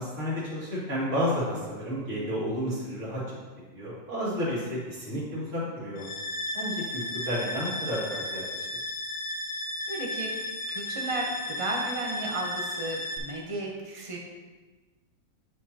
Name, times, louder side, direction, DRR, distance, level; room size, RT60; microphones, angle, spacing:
voice 1, 0.0-3.4 3.7-6.1 6.5-8.8, equal, 60° right, -7 dB, 2.6 m, -31 dB
sound 1, 6.0-13.2, left 1 dB, 55° left, 1.3 m, -34 dB
voice 2, 9.9-10.3 10.7-14.2, right 2 dB, 25° right, -1 dB, 1.0 m, -34 dB
9.8 x 4.9 x 2.9 m, 1.3 s
omnidirectional pair, 1.4 m